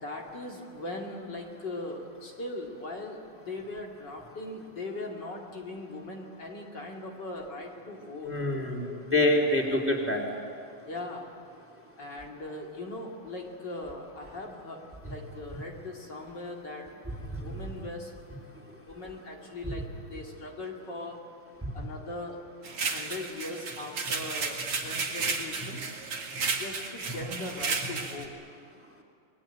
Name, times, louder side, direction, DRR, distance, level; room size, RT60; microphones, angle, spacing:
voice 1, 0.0-8.3 10.9-11.3 12.0-16.9 17.4-18.1 18.8-19.8 20.1-21.2 21.7-22.4 22.8-25.8 26.6-28.5, left 2 dB, 50° left, -1 dB, 3.2 m, -40 dB
voice 2, 8.2-10.2 17.4-17.5 27.3-27.4, left 1 dB, 5° right, 1 dB, 3.2 m, -26 dB
sound 1, 22.6-28.2, right 4 dB, 80° right, 3.1 m, -33 dB
28.0 x 21.5 x 9.2 m, 2.3 s
omnidirectional pair, 2.4 m